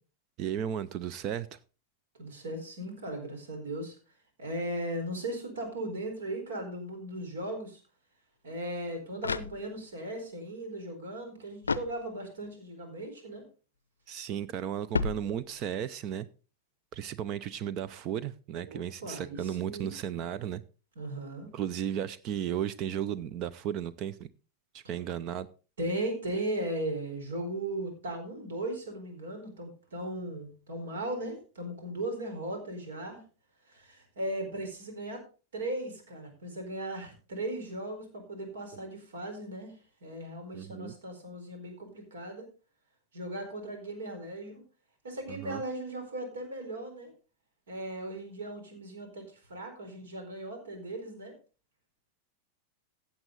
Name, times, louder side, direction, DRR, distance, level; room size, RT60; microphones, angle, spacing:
voice 1, 0.4-1.6 14.1-16.3 16.9-20.6 21.5-24.3 24.7-25.5 40.5-40.9 45.3-45.6, right 9 dB, 40° right, 16 dB, 0.6 m, -34 dB
voice 2, 2.2-4.0 4.4-7.8 8.4-13.4 18.6-19.9 21.0-21.5 25.8-33.2 33.7-35.2 35.5-39.7 40.0-42.5 43.1-44.6 45.0-47.1 47.7-51.3, right 1 dB, 65° right, 5 dB, 4.2 m, -37 dB
sound 1, 9.0-10.1 11.6-12.5 14.9-15.8, left 4 dB, 75° left, 0.5 m, -34 dB
15.0 x 8.5 x 3.9 m, 0.34 s
figure-of-eight pair, 90°, 0 cm